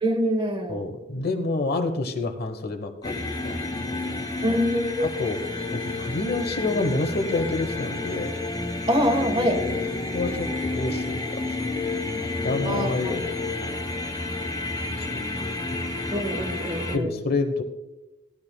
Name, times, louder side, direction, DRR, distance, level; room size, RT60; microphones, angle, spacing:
voice 1, 0.0-0.8 4.4-5.1 8.9-9.6 12.6-13.2 16.1-17.2, equal, 25° right, 6 dB, 1.4 m, -25 dB
voice 2, 0.7-3.6 3.9-4.2 5.0-5.4 5.7-8.3 9.6-9.8 10.1-13.3 13.6-13.8 15.0-15.2 16.9-17.6, left 2 dB, 55° left, 6 dB, 1.1 m, -29 dB
sound 1, 3.0-17.0, left 2 dB, 20° left, 1.0 m, -30 dB
17.0 x 12.5 x 2.3 m, 1.0 s
head